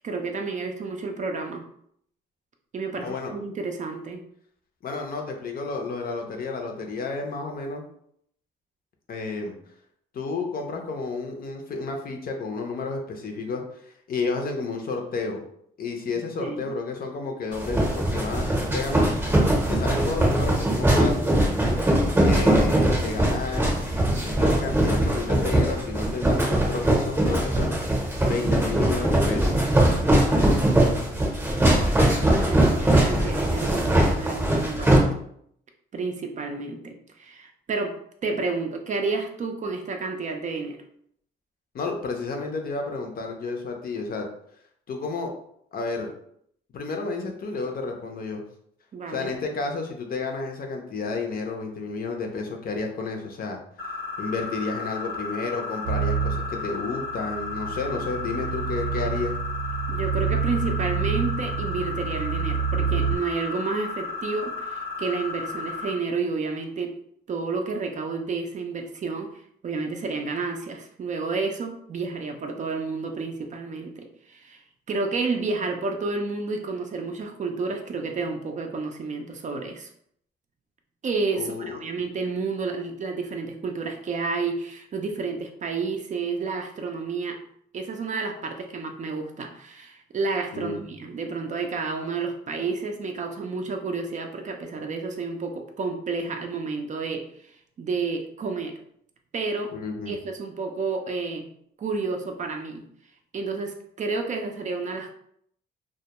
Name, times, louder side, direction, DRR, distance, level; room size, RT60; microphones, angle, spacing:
voice 1, 0.0-1.6 2.7-4.2 16.4-16.8 31.9-35.1 35.9-38.0 38.2-40.8 48.9-49.3 59.9-67.0 67.3-79.9 81.0-87.4 87.7-98.8 99.3-99.7 100.1-101.5 101.8-102.9 103.3-105.1, right 4 dB, 40° right, 4 dB, 0.4 m, -30 dB
voice 2, 3.0-3.3 4.8-7.8 9.1-9.6 10.1-15.4 15.8-19.1 19.7-21.1 22.2-29.5 41.7-44.3 44.9-45.3 45.7-46.1 46.7-48.4 49.1-53.6 54.2-59.3 81.3-81.8 90.5-90.8 99.7-100.1, left 4 dB, 50° left, 3 dB, 0.5 m, -31 dB
sound 1, 17.5-35.0, right 1 dB, 10° right, 0.7 m, -21 dB
sound 2, 53.8-65.9, left 4 dB, 85° left, 0.8 m, -34 dB
sound 3, 55.8-63.2, right 7 dB, 80° right, 0.6 m, -28 dB
2.2 x 2.1 x 2.8 m, 0.68 s
cardioid pair, 90°, 20 cm